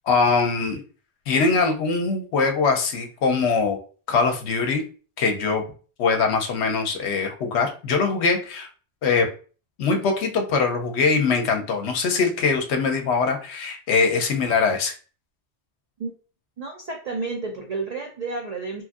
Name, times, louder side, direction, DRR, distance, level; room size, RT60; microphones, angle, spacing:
voice 1, 0.1-0.8 1.3-3.8 4.1-4.8 5.2-5.6 6.0-8.7 9.0-9.3 9.8-14.9, left 4 dB, 70° left, 4 dB, 0.8 m, -22 dB
voice 2, 16.6-18.8, right 3 dB, 65° right, 1 dB, 0.4 m, -31 dB
3.0 x 2.5 x 2.3 m, 0.38 s
omnidirectional pair, 1.2 m